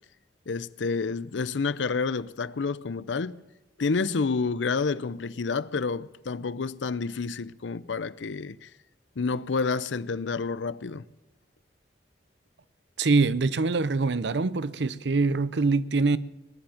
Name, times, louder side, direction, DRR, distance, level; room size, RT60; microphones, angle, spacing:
voice 1, 0.5-3.4 3.8-8.7 9.2-11.0, left 4 dB, 85° left, 0.6 m, -29 dB
voice 2, 13.0-16.2, right 3 dB, 70° right, 0.7 m, -24 dB
19.0 x 10.5 x 7.2 m
head